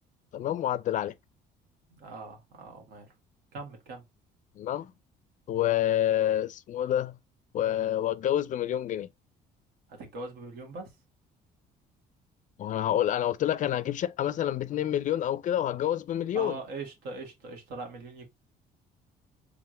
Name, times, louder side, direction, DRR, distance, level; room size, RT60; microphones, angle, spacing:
voice 1, 0.3-1.1 4.6-4.9 5.5-7.1 7.5-9.1 12.6-16.6, left 11 dB, 50° left, 0.4 m, -28 dB
voice 2, 1.9-3.1 3.5-4.0 9.9-10.9 16.3-18.3, right 3 dB, 80° right, 1.8 m, -41 dB
3.6 x 3.4 x 3.0 m
cardioid pair, 110°, 17 cm